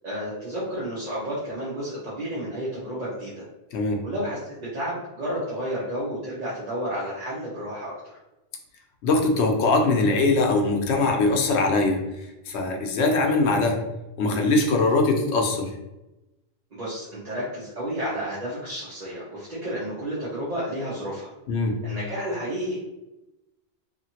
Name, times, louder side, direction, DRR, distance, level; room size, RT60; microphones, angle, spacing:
voice 1, 0.0-3.4 4.0-8.1 16.7-21.3 21.8-22.8, equal, 40° right, -9 dB, 0.9 m, -31 dB
voice 2, 3.7-4.0 9.0-12.0 12.5-13.8 14.2-15.7 21.5-21.8, left 3 dB, 85° left, 2 dB, 0.9 m, -21 dB
2.8 x 2.5 x 2.8 m, 0.97 s
omnidirectional pair, 1.1 m